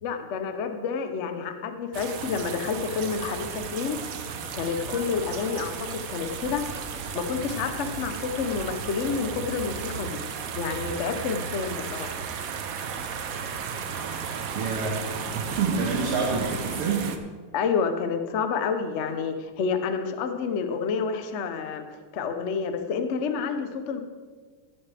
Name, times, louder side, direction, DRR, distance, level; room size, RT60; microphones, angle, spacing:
voice 1, 0.0-4.0 4.5-6.6 7.1-10.2 10.5-12.2 17.5-21.9 22.1-24.0, left 5 dB, 60° left, 7 dB, 0.7 m, -29 dB
sound 1, 1.9-17.2, right 6 dB, 65° right, 0.8 m, -34 dB
voice 2, 14.5-15.0 15.3-17.0, right 4 dB, 85° right, -4 dB, 2.4 m, -27 dB
15.5 x 8.9 x 3.4 m, 1.5 s
omnidirectional pair, 2.4 m